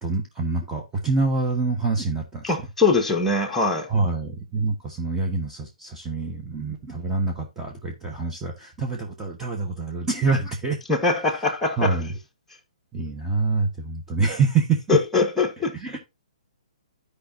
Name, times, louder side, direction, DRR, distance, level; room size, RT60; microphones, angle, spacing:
voice 1, 0.0-2.5 3.9-10.8 11.4-11.5 11.7-12.2 12.9-15.0 15.7-16.0, right 4 dB, 10° right, 1.4 m, -26 dB
voice 2, 2.4-3.9 10.9-12.0 14.9-15.7, left 4 dB, 5° left, 1.3 m, -22 dB
14.0 x 4.9 x 2.8 m
figure-of-eight pair, 125°, 4 cm